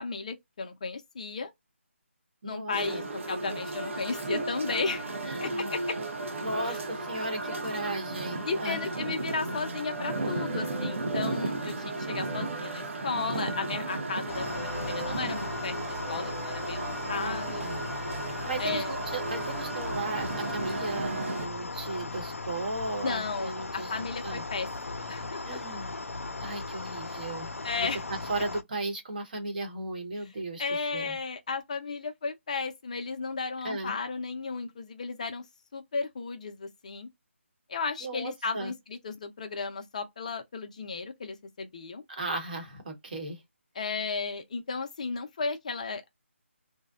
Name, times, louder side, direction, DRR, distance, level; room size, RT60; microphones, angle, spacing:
voice 1, 0.0-1.5 2.4-5.2 5.4-6.0 6.7-6.8 8.4-16.8 17.1-17.7 18.6-18.9 23.0-25.6 27.6-28.0 30.6-35.4 35.7-37.1 37.7-42.0 43.8-46.1, left 4 dB, 30° left, 0.4 m, -34 dB
voice 2, 2.4-3.1 5.2-5.7 6.4-8.9 17.1-17.8 18.4-23.9 24.2-24.4 25.4-26.0 26.4-27.5 27.8-27.9 28.3-31.2 33.6-34.0 38.0-38.7 42.1-43.4, right 2 dB, 40° right, 0.9 m, -36 dB
sound 1, 2.7-21.5, right 2 dB, 70° right, 0.7 m, -34 dB
sound 2, 10.1-11.0 12.2-12.8 14.5-15.2 16.0-16.7, equal, 5° left, 0.8 m, -46 dB
sound 3, 14.3-28.6, left 3 dB, 90° left, 0.5 m, -37 dB
2.5 x 2.1 x 2.3 m
figure-of-eight pair, 165°, 7 cm